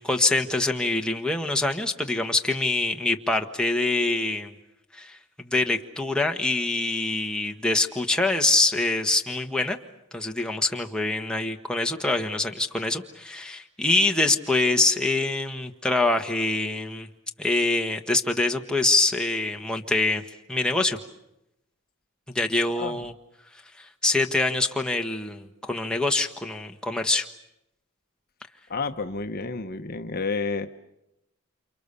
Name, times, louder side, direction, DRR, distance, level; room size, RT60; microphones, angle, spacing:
voice 1, 0.0-4.5 4.9-9.8 10.1-17.1 17.4-20.2 20.5-21.0 22.3-23.1 23.8-27.3, left 2 dB, 5° left, 2 dB, 1.4 m, -25 dB
voice 2, 28.7-30.7, left 4 dB, 45° left, 8 dB, 1.0 m, -30 dB
29.5 x 28.0 x 6.9 m, 0.87 s
head